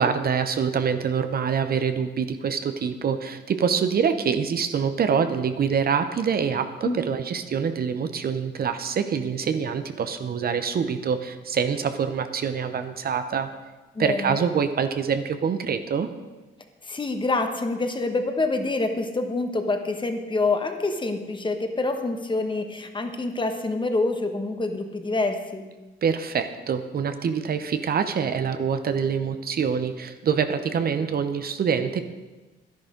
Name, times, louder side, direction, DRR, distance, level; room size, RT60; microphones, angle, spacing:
voice 1, 0.0-13.5 14.0-16.1 26.0-32.0, right 6 dB, 50° right, 9 dB, 0.8 m, -25 dB
voice 2, 13.9-14.4 16.8-25.7, left 3 dB, 25° left, 6 dB, 1.3 m, -26 dB
10.5 x 10.5 x 5.1 m, 1.2 s
cardioid pair, 90°, 20 cm